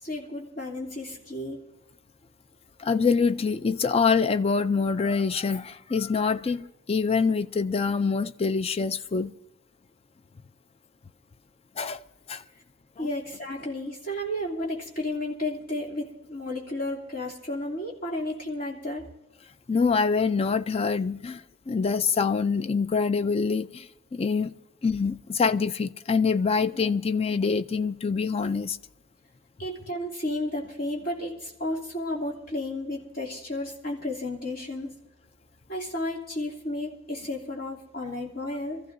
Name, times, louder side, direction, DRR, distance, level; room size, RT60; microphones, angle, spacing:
voice 1, 0.0-1.6 13.0-19.0 29.6-34.9 35.7-38.8, left 1 dB, 45° left, 3.0 m, -32 dB
voice 2, 2.8-9.3 11.8-12.0 12.3-12.4 19.7-24.5 24.8-28.8, left 5 dB, 30° left, 0.4 m, -25 dB
24.5 x 14.5 x 2.6 m
head